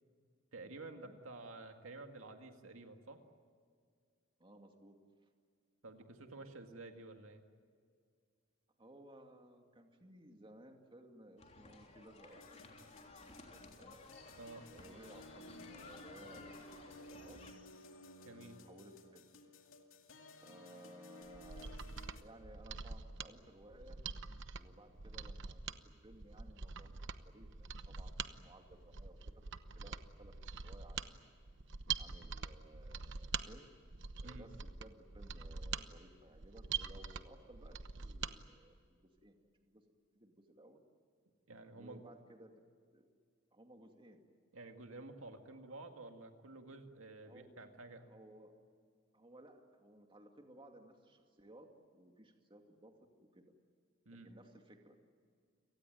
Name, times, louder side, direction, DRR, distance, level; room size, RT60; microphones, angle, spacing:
voice 1, 0.5-3.2 5.8-7.4 14.4-14.7 18.2-18.6 34.2-34.5 41.5-42.1 44.5-48.1 54.1-54.3, right 2 dB, 85° right, 5 dB, 2.1 m, -51 dB
voice 2, 4.4-5.0 8.8-13.1 13.5-13.9 14.7-17.4 18.2-19.4 20.4-21.8 22.1-24.0 24.6-25.6 26.0-29.4 29.7-30.3 30.6-31.3 32.0-33.6 34.2-39.8 40.1-40.8 41.7-42.5 42.9-43.1 43.5-44.2 47.3-47.7 48.1-48.5 49.1-52.9 53.2-53.5 54.2-55.0, right 1 dB, 25° right, 3 dB, 2.5 m, -59 dB
sound 1, 11.4-17.5, left 2 dB, 35° left, 3.3 m, -57 dB
sound 2, 12.3-22.2, left 2 dB, 75° left, 2.4 m, -56 dB
Mechanisms, 21.3-38.4 38.7-38.8, right 6 dB, 65° right, 1.0 m, -44 dB
29.5 x 18.5 x 9.3 m, 2.1 s
head